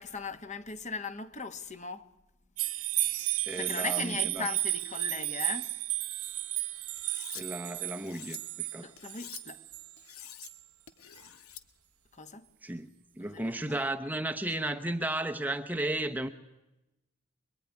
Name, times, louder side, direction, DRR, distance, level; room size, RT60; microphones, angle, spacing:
voice 1, 0.0-2.1 3.6-5.7 8.8-9.6 12.1-12.5 13.3-13.8, left 4 dB, 35° left, 1.3 m, -39 dB
sound 1, 2.6-9.9 10.4-10.5, right 15 dB, 75° right, 1.0 m, -33 dB
voice 2, 3.5-4.5 7.3-8.9 12.6-12.9 13.2-16.3, right 1 dB, 10° right, 0.9 m, -34 dB
Cutlery silverware, 7.0-7.4 7.9-8.4 9.0-9.4 10.0-10.5 10.9-11.6, left 10 dB, 75° left, 1.7 m, -47 dB
26.0 x 22.0 x 9.8 m
head